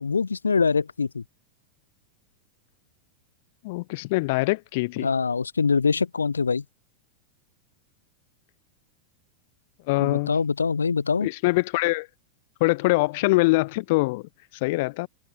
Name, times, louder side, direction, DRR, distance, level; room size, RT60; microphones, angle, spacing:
voice 1, 0.0-1.2 5.0-6.6 10.0-11.3, left 5 dB, 75° left, 0.7 m, -24 dB
voice 2, 3.6-5.1 9.9-10.3 11.2-12.1 12.6-14.3 14.6-15.1, left 23 dB, 50° left, 2.7 m, -23 dB
figure-of-eight pair, 90°, 0 cm